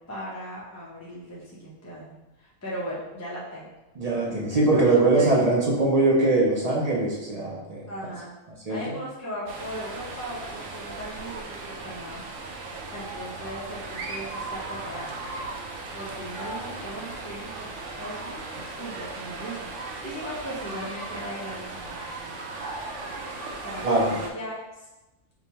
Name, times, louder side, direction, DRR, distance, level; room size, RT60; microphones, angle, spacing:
voice 1, 0.1-3.7 4.5-5.3 7.9-8.3 8.7-11.4 11.7-12.2 12.9-15.1 15.9-22.4 23.6-23.8 24.1-24.9, equal, 25° left, -7 dB, 0.3 m, -38 dB
voice 2, 4.0-7.9 8.7-8.8 23.8-24.1, right 2 dB, 45° right, -4 dB, 0.5 m, -22 dB
sound 1, 9.5-24.3, right 3 dB, 70° right, 0.9 m, -37 dB
4.8 x 2.2 x 2.8 m, 1.0 s
omnidirectional pair, 1.4 m